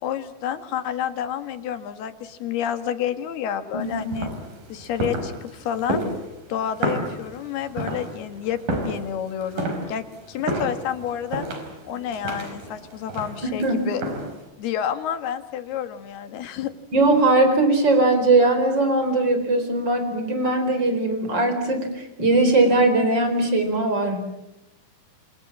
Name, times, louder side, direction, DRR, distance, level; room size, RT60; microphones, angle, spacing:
voice 1, 0.0-4.3 4.7-6.1 6.5-8.6 8.9-11.5 11.9-14.0 14.6-16.7, left 9 dB, 85° left, 10 dB, 3.8 m, -29 dB
voice 2, 3.7-4.1 13.4-13.8 16.9-24.4, right 2 dB, 30° right, 7 dB, 4.8 m, -20 dB
sound 1, 3.8-14.5, right 1 dB, 65° right, 6.3 m, -31 dB
28.0 x 26.5 x 7.4 m, 0.91 s
omnidirectional pair, 4.4 m